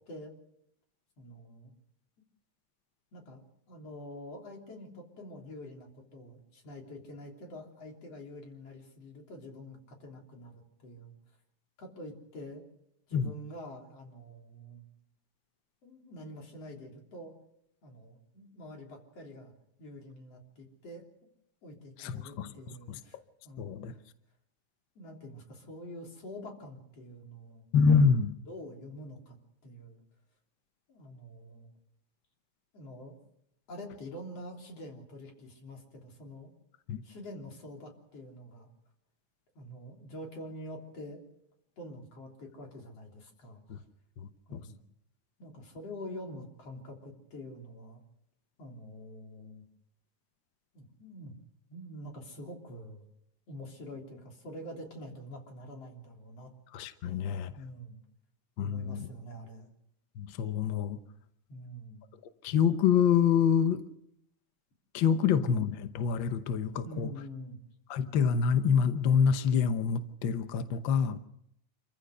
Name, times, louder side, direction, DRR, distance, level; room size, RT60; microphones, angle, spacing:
voice 1, 1.2-1.7 3.1-11.1 11.8-12.6 13.1-14.9 15.8-17.3 17.8-19.5 19.8-21.1 21.6-23.2 23.4-24.0 25.0-27.6 28.5-29.4 29.6-30.0 30.9-31.7 32.7-33.1 33.7-36.5 37.0-38.7 39.6-41.2 41.8-43.8 44.5-44.8 45.4-48.0 48.6-49.7 50.7-51.3 51.7-53.0 53.5-56.5 57.0-58.0 58.6-59.7 61.5-62.1 66.8-67.6, equal, 55° left, 4.5 m, -46 dB
voice 2, 22.0-22.5 23.6-23.9 27.7-28.3 36.9-37.0 43.7-43.8 44.5-44.6 56.7-57.5 58.6-59.1 60.2-61.0 62.4-63.8 64.9-67.1 67.9-71.2, left 7 dB, 70° left, 1.1 m, -26 dB
27.5 x 15.0 x 6.6 m
omnidirectional pair, 3.4 m